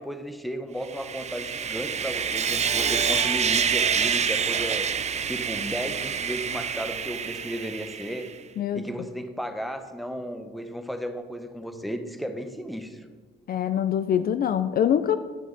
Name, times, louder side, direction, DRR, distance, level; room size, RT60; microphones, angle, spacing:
voice 1, 0.0-4.9 5.3-8.3 8.7-13.0, equal, ahead, 7 dB, 0.8 m, -34 dB
Sawing, 0.8-8.3, right 7 dB, 35° right, 0.5 m, -27 dB
voice 2, 13.5-15.2, left 9 dB, 50° left, 12 dB, 0.4 m, -24 dB
11.0 x 6.3 x 3.9 m, 1.5 s
cardioid pair, 90°, 20 cm